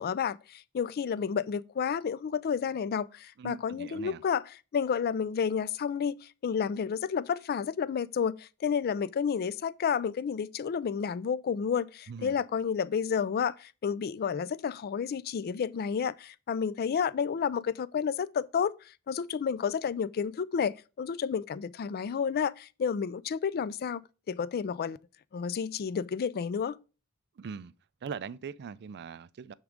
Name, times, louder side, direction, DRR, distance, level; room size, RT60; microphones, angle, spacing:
voice 1, 0.0-4.4 4.7-24.0 24.3-25.0 25.3-26.8, left 7 dB, 45° left, 0.3 m, -31 dB
voice 2, 3.4-4.2 12.1-12.4 27.4-27.7 28.0-29.5, right 6 dB, 50° right, 0.4 m, -41 dB
9.2 x 3.7 x 5.0 m
head